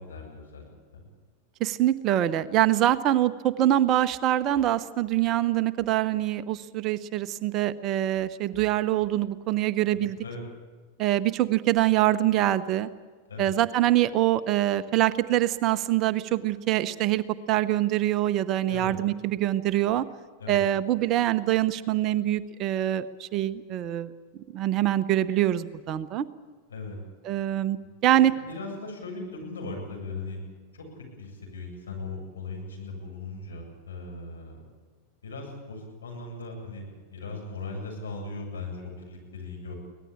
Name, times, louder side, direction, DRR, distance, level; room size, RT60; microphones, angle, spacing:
voice 1, 0.1-1.0 9.9-10.4 13.3-13.5 18.7-18.9 20.4-20.6 26.7-27.0 28.2-30.4 30.7-30.9 31.2-34.6 35.2-39.7, left 3 dB, 70° left, 0 dB, 7.9 m, -38 dB
voice 2, 1.6-10.2 11.0-12.9 13.4-17.2 17.5-20.0 20.5-24.1 24.5-26.3 27.2-28.3, right 13 dB, 35° right, 15 dB, 0.8 m, -24 dB
23.5 x 18.5 x 8.7 m, 1.4 s
figure-of-eight pair, 90°, 0 cm